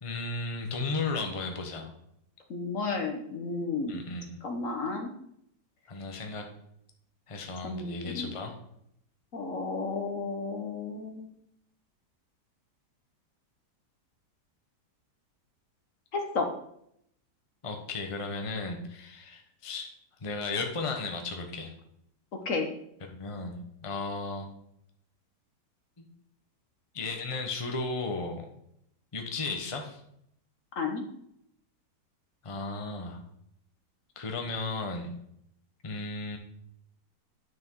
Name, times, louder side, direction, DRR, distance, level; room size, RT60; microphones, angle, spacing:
voice 1, 0.0-1.9 3.9-4.4 5.9-6.4 7.3-8.5 17.6-19.9 20.2-21.7 23.0-24.5 26.0-26.1 26.9-28.5 29.1-30.0 32.4-33.2 34.2-35.1 35.8-36.4, left 3 dB, 20° left, 3 dB, 1.0 m, -35 dB
voice 2, 2.5-3.9 4.4-5.1 7.6-8.3 9.3-11.3 16.1-16.5 22.4-22.7 30.8-31.0, left 4 dB, 55° left, 4 dB, 1.4 m, -32 dB
9.7 x 6.4 x 4.7 m, 0.73 s
omnidirectional pair, 1.8 m